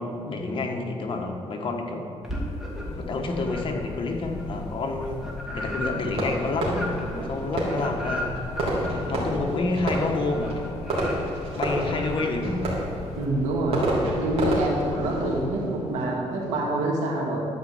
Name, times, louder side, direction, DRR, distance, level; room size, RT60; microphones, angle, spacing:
voice 1, 0.0-2.0 2.8-6.8 7.3-8.4 8.9-10.8 11.1-11.2 11.5-12.7, left 3 dB, 50° left, 2 dB, 1.4 m, -29 dB
sound 1, 2.2-3.1 3.4-13.3, equal, 5° right, 2.4 m, -36 dB
sound 2, 2.7-15.5, left 3 dB, 70° left, 1.2 m, -40 dB
Fireworks, 6.1-16.7, right 1 dB, 60° right, 3.1 m, -30 dB
voice 2, 13.2-13.8 14.1-17.4, right 1 dB, 85° right, -2 dB, 2.3 m, -26 dB
12.0 x 5.2 x 7.9 m, 2.6 s
cardioid pair, 110°, 11 cm